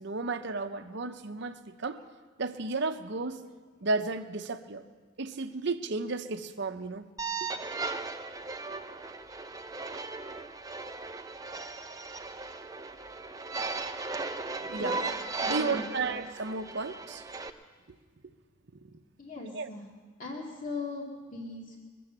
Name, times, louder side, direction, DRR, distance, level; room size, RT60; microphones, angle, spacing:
voice 1, 0.0-2.0 2.4-3.4 3.8-4.8 5.2-7.0 7.4-7.5 14.7-14.9 15.5-17.3 19.6-19.7, right 3 dB, 55° right, 8 dB, 0.7 m, -33 dB
sound 1, 7.2-17.5, right 3 dB, 15° right, 0.5 m, -37 dB
voice 2, 14.5-15.0 15.4-15.9 19.2-19.9 20.2-21.8, left 3 dB, 40° left, -2 dB, 2.0 m, -39 dB
22.5 x 7.7 x 7.2 m, 1.5 s
head